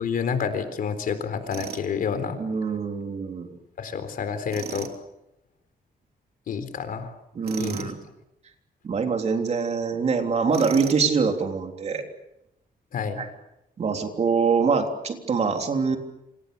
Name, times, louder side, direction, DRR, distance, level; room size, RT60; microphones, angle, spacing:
voice 1, 0.0-2.4 3.8-4.9 6.5-7.1 7.5-7.9 12.9-13.2, left 6 dB, 65° left, 10 dB, 3.9 m, -29 dB
Tools, 1.5-1.9 4.5-5.0 7.4-7.9 10.5-11.1, right 8 dB, 80° right, 3.2 m, -36 dB
voice 2, 2.4-3.5 7.3-8.0 8.8-12.0 13.2-13.3 13.8-16.0, right 5 dB, 45° right, 4 dB, 3.4 m, -24 dB
28.5 x 26.5 x 6.9 m, 0.85 s
wide cardioid pair, 165°, 16 cm